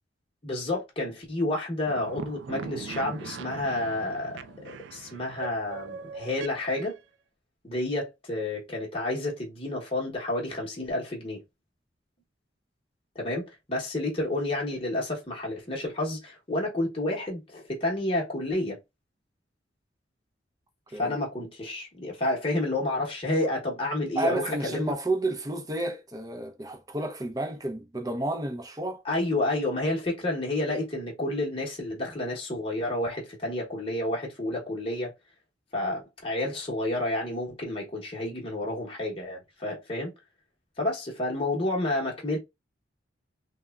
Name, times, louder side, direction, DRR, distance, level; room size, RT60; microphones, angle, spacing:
voice 1, 0.4-7.0 7.6-11.4 13.1-18.8 20.9-24.9 29.0-35.1 35.7-40.1 40.8-42.4, left 1 dB, 30° left, 0.9 m, -30 dB
sound 1, 1.9-7.0, right 5 dB, 75° right, 0.3 m, -41 dB
voice 2, 24.2-29.0, right 2 dB, 20° right, 0.5 m, -31 dB
3.4 x 2.1 x 2.2 m
head